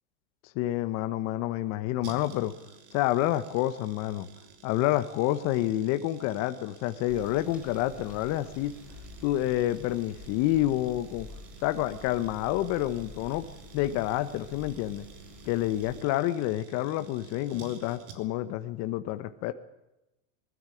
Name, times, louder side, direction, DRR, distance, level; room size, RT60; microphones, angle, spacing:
voice 1, 0.5-2.5 2.9-4.3 4.6-8.7 9.2-11.3 11.6-13.4 13.7-15.0 15.4-19.5, left 14 dB, 45° left, 10 dB, 1.1 m, -28 dB
sound 1, 2.0-18.5 18.8-18.9, right 5 dB, 50° right, 3.4 m, -51 dB
sound 2, 7.1-16.0, left 1 dB, 5° right, 5.1 m, -49 dB
20.5 x 13.5 x 9.9 m, 0.93 s
supercardioid pair, 135°, 38 cm